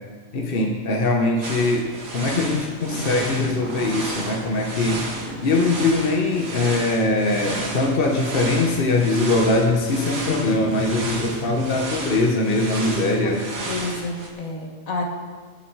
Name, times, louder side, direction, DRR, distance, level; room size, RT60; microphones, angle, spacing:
voice 1, 0.3-5.1 5.4-13.5, left 2 dB, 45° left, 1 dB, 1.2 m, -22 dB
sound 1, 1.4-14.3, right 2 dB, 75° right, 2.1 m, -33 dB
sound 2, 2.5-9.7, right 1 dB, 35° right, 1.9 m, -38 dB
voice 2, 13.2-15.0, left 2 dB, 75° left, 1 dB, 1.8 m, -30 dB
19.5 x 7.4 x 4.7 m, 1.5 s
omnidirectional pair, 1.5 m